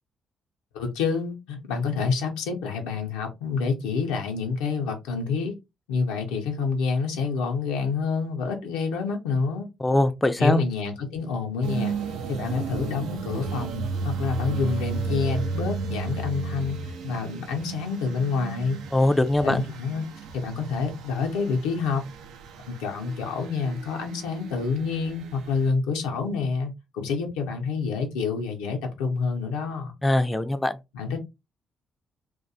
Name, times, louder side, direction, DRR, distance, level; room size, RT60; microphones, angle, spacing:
voice 1, 0.7-5.6 5.9-9.7 10.4-12.0 12.3-16.8 17.0-18.8 19.4-20.0 20.3-22.0 22.7-29.9 30.9-31.2, left 5 dB, 80° left, 0.5 m, -28 dB
voice 2, 9.8-10.6 18.9-19.6 30.0-30.8, left 1 dB, 15° left, 0.3 m, -22 dB
sound 1, 11.6-25.7, right 5 dB, 75° right, 0.3 m, -34 dB
2.2 x 2.1 x 2.6 m
hypercardioid pair, 45°, 0 cm